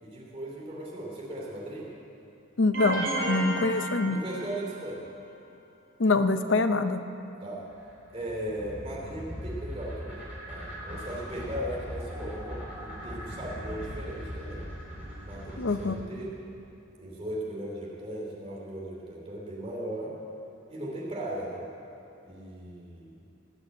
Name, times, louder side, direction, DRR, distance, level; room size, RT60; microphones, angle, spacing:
voice 1, 0.0-1.9 3.5-3.7 4.0-5.1 7.4-7.6 8.1-16.3 17.0-20.1 20.7-21.7 22.2-23.2, right 1 dB, 25° right, -4 dB, 2.9 m, -38 dB
voice 2, 2.6-4.2 6.0-7.0 15.6-16.0, left 3 dB, 60° left, 9 dB, 0.7 m, -25 dB
sound 1, 2.7-4.8, right 2 dB, 70° right, 2.6 m, -32 dB
sound 2, 7.7-15.9, equal, 5° right, 3.4 m, -39 dB
19.0 x 6.3 x 8.8 m, 2.8 s
head